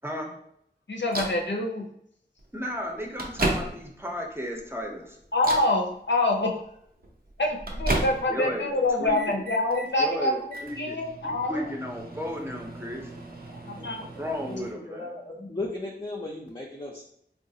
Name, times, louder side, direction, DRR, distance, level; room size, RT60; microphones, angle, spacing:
voice 1, 0.9-1.9 5.3-6.5 7.4-10.3 10.8-11.6 13.5-14.3, left 2 dB, 75° left, 1 dB, 0.6 m, -26 dB
Microwave oven, 1.1-1.4 2.4-2.5 2.9-4.1 4.6-4.9 5.4-5.8 7.0-8.5 8.8-9.9 10.4-14.7, right 2 dB, 55° right, 0.6 m, -33 dB
voice 2, 2.5-5.2 8.3-8.7 9.0-9.4 10.0-11.0 11.2-13.1 14.0-15.1, equal, 15° right, 0 dB, 0.7 m, -34 dB
voice 3, 14.4-17.0, left 2 dB, 25° left, -4 dB, 0.5 m, -36 dB
3.7 x 2.4 x 2.7 m, 0.70 s
wide cardioid pair, 45°, 19 cm